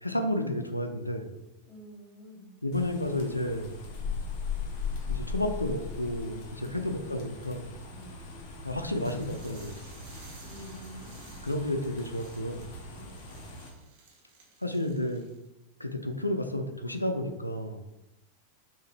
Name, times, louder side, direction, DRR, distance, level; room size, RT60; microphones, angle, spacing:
voice 1, 0.0-1.3 2.6-3.7 5.1-7.7 8.6-9.8 11.4-12.7 14.6-15.2 15.8-17.8, left 1 dB, 85° left, 6 dB, 0.4 m, -31 dB
voice 2, 1.6-2.5 6.6-7.0 7.9-8.2 10.4-11.4 12.9-13.3, equal, 20° right, -3 dB, 1.5 m, -49 dB
sound 1, 2.7-13.7, left 4 dB, 45° left, 0.9 m, -39 dB
sound 2, 9.0-15.5, right 4 dB, 45° right, 1.1 m, -55 dB
5.5 x 2.6 x 3.2 m, 0.95 s
figure-of-eight pair, 90°, 0 cm